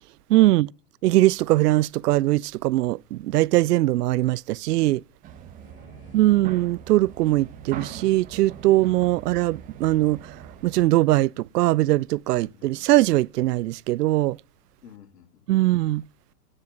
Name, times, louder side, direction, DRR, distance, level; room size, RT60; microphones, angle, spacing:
voice 1, 0.3-0.7 1.0-5.0 6.1-10.2 10.6-14.4 15.5-16.0, right 17 dB, 75° right, 0.5 m, -21 dB
sound 1, 5.2-10.9, right 8 dB, 15° right, 1.0 m, -41 dB
voice 2, 5.6-6.4 12.3-13.1 14.8-15.3, left 8 dB, 80° left, 2.7 m, -51 dB
9.8 x 7.5 x 9.3 m
hypercardioid pair, 155°, 48 cm